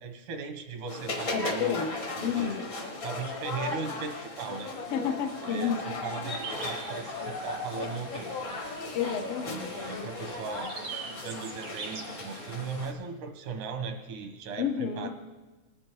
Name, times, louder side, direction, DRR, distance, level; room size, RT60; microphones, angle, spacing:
voice 1, 0.0-1.9 2.2-2.6 3.0-4.7 5.4-8.6 9.5-10.7 11.2-15.1, right 5 dB, 90° right, 6 dB, 2.5 m, -38 dB
sound 1, 0.9-12.9, left 2 dB, 55° left, 0.8 m, -37 dB
voice 2, 1.3-1.9 2.2-2.7 4.9-5.8 8.9-10.1 14.6-15.1, left 7 dB, 90° left, 6 dB, 1.2 m, -31 dB
sound 2, 5.6-6.8 7.1-8.0 8.4-8.7, left 4 dB, 75° left, 2.2 m, -40 dB
sound 3, 6.3-12.8, right 4 dB, 65° right, 0.8 m, -43 dB
19.0 x 6.4 x 4.5 m, 1.2 s
omnidirectional pair, 3.5 m